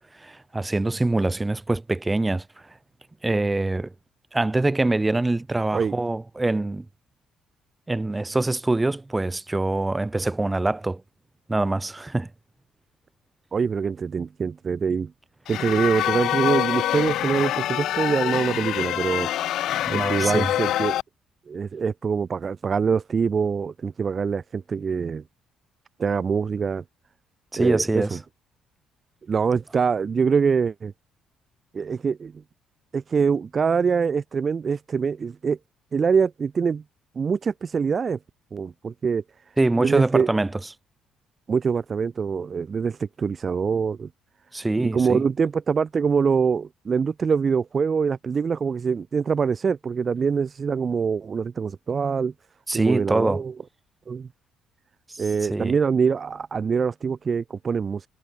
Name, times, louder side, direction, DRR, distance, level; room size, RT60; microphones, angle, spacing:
voice 1, 0.2-2.4 3.2-3.9 4.3-6.8 7.9-11.0 11.5-12.3 19.9-20.5 27.5-28.2 39.6-40.5 44.5-45.2 52.7-53.4 55.1-55.7, right 2 dB, 10° right, 2.9 m, -24 dB
voice 2, 13.5-15.1 15.5-19.3 19.9-21.0 21.5-25.2 26.0-26.8 27.6-28.2 29.3-30.9 31.7-32.3 32.9-35.6 35.9-36.8 37.2-38.2 38.5-39.2 39.8-40.3 41.5-44.1 44.8-52.3 52.7-53.5 54.1-54.3 55.2-58.1, right 6 dB, 30° right, 2.4 m, -24 dB
sound 1, 15.5-21.0, left 13 dB, 60° left, 0.4 m, -25 dB
cardioid pair, 160°, 0 cm